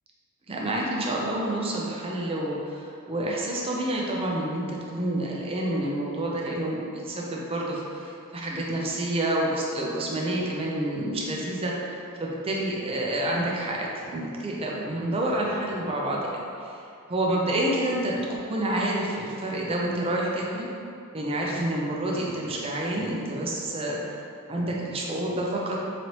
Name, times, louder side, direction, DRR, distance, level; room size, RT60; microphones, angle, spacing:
voice 1, 0.5-6.8 7.1-11.9 12.2-16.4 16.7-16.8 17.1-20.7 21.1-24.0 24.5-25.9, right 1 dB, 25° right, -3 dB, 0.5 m, -28 dB
4.0 x 3.1 x 2.9 m, 2.5 s
head